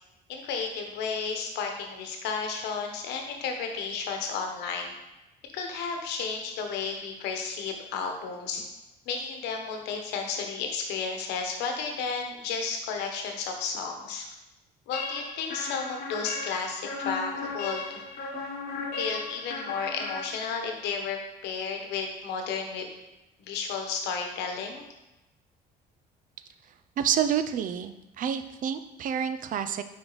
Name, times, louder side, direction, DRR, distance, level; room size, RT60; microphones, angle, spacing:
voice 1, 0.3-4.9 5.5-8.7 9.1-14.3 14.9-18.0 18.9-21.2 21.4-22.9 23.5-24.8, left 5 dB, 90° left, 3 dB, 1.0 m, -33 dB
sound 1, 14.9-20.8, left 3 dB, 60° left, 1.2 m, -36 dB
voice 2, 27.0-29.8, right 8 dB, 50° right, 10 dB, 0.5 m, -28 dB
5.0 x 4.8 x 4.0 m, 0.97 s
cardioid pair, 110°, 17 cm